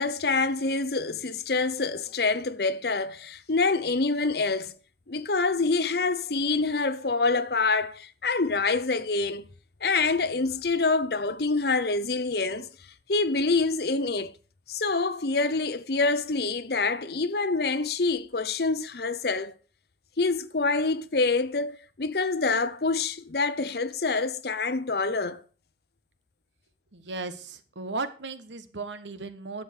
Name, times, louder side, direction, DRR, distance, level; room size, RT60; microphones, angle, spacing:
voice 1, 0.0-4.7 5.1-9.5 9.8-12.7 13.1-14.3 14.7-19.5 20.2-25.4, left 3 dB, 55° left, 0.8 m, -26 dB
voice 2, 26.9-29.6, right 3 dB, 80° right, 1.3 m, -36 dB
11.0 x 7.3 x 6.4 m
head